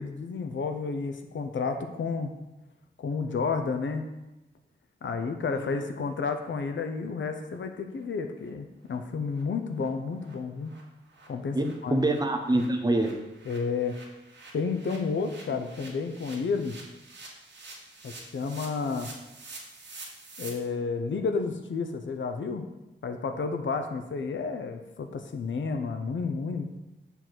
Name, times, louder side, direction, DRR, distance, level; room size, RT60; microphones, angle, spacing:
voice 1, 0.0-2.3 3.0-4.0 5.0-10.7 11.3-12.0 13.5-14.0 14.5-16.8 18.0-19.1 20.4-22.7 23.0-26.6, left 4 dB, 70° left, 6 dB, 0.7 m, -31 dB
voice 2, 5.5-5.8 11.5-13.2, right 2 dB, 20° right, 5 dB, 0.7 m, -26 dB
sound 1, 7.5-7.6 8.0-8.1 8.4-8.5 8.9-9.0 9.3-9.4 9.7-9.9 10.2-10.3 10.6-20.5, right 3 dB, 65° right, 1.6 m, -48 dB
6.9 x 4.0 x 6.1 m, 0.99 s
wide cardioid pair, 135°, 20 cm